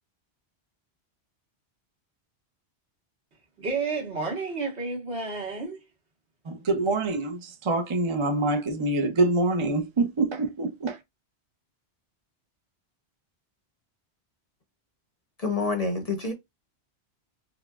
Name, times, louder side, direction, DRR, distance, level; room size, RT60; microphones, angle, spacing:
voice 1, 3.6-5.8, right 4 dB, 70° right, 1.7 m, -31 dB
voice 2, 6.4-11.0, right 2 dB, 35° right, 0.6 m, -25 dB
voice 3, 15.4-16.3, left 3 dB, 40° left, 0.7 m, -27 dB
4.8 x 2.3 x 2.3 m
omnidirectional pair, 1.2 m